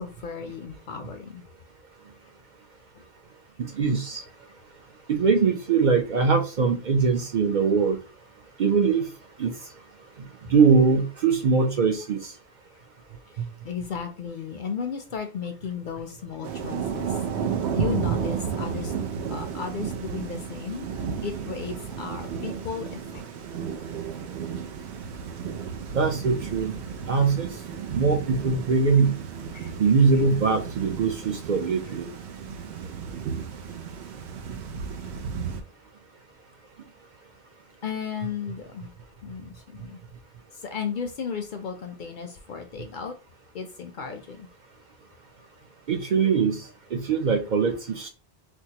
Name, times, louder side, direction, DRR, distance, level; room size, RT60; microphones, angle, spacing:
voice 1, 0.0-1.4 13.6-17.1 17.7-18.9 19.3-20.9 21.2-23.2 29.5-29.7 37.8-38.9 39.2-40.0 40.6-43.1 43.5-44.5, left 6 dB, 60° left, 6 dB, 0.6 m, -34 dB
voice 2, 3.6-4.2 5.1-8.0 8.6-9.1 9.4-9.5 10.5-12.3 25.9-26.7 27.1-27.5 27.9-29.1 29.8-32.1 45.9-46.6 46.9-48.1, right 5 dB, 55° right, 5 dB, 0.6 m, -22 dB
Thunder / Rain, 16.4-35.6, right 7 dB, 85° right, 0.9 m, -33 dB
4.5 x 2.2 x 2.8 m, 0.32 s
omnidirectional pair, 1.1 m